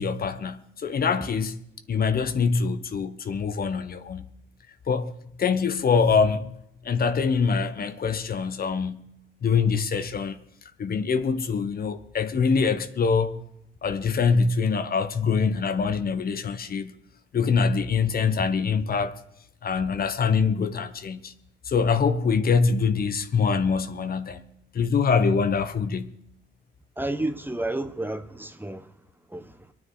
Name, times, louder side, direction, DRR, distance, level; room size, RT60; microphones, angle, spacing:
voice 1, 0.0-1.6 1.9-4.3 4.9-5.1 5.4-6.6 6.8-9.1 9.4-10.4 10.8-13.4 13.8-16.9 17.3-19.2 19.6-21.3 21.6-24.4 24.7-26.1, left 5 dB, 50° left, 1.1 m, -24 dB
voice 2, 27.0-28.9 29.3-29.6, right 2 dB, 10° right, 1.1 m, -31 dB
23.5 x 9.6 x 4.8 m
cardioid pair, 90°, 20 cm